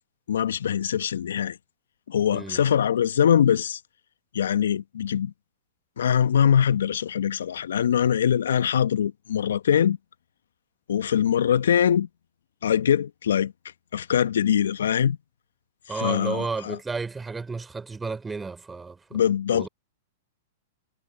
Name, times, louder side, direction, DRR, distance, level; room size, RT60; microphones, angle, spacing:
voice 1, 0.3-1.6 2.1-3.8 4.3-5.3 6.0-10.0 10.9-12.1 12.6-13.5 13.9-15.2 15.9-16.8 19.1-19.7, left 9 dB, 70° left, 1.4 m, -22 dB
voice 2, 2.3-2.6 15.9-19.2 19.5-19.7, right 4 dB, 10° right, 3.6 m, -32 dB
hypercardioid pair, 105°, 0 cm